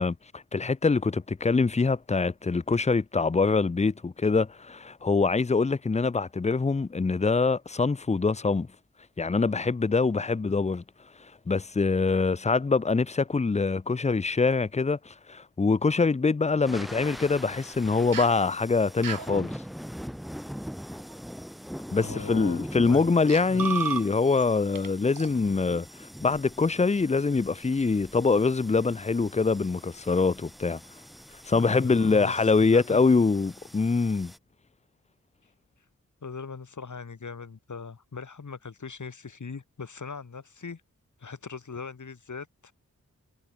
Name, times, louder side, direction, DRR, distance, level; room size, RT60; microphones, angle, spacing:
voice 1, 0.0-8.7 9.2-10.8 11.5-19.5 21.9-25.9 26.2-30.8 31.5-34.3, left 4 dB, 20° left, 0.6 m, -24 dB
sound 1, 16.6-34.4, equal, ahead, 2.9 m, -43 dB
sound 2, 18.1-18.4 19.0-19.3 21.0-21.1 22.0-22.3 22.9-23.0 23.3-24.4 24.7-24.9 25.2-25.3, right 7 dB, 85° right, 2.8 m, -32 dB
voice 2, 21.9-23.1 23.5-23.7 31.5-33.2 36.2-40.8 41.2-42.7, left 5 dB, 60° left, 4.9 m, -40 dB
cardioid pair, 45°, 33 cm